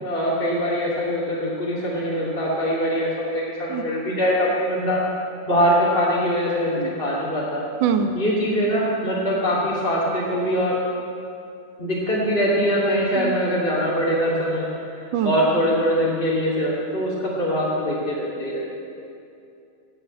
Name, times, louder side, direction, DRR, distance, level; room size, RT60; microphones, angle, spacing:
voice 1, 0.0-5.0 5.5-7.6 8.1-10.8 11.8-14.7 14.9-18.6, equal, 20° left, -8 dB, 2.6 m, -23 dB
voice 2, 7.8-8.1 13.2-13.3 15.1-15.3, right 7 dB, 80° right, 7 dB, 1.0 m, -22 dB
17.5 x 9.4 x 8.8 m, 2.6 s
omnidirectional pair, 3.6 m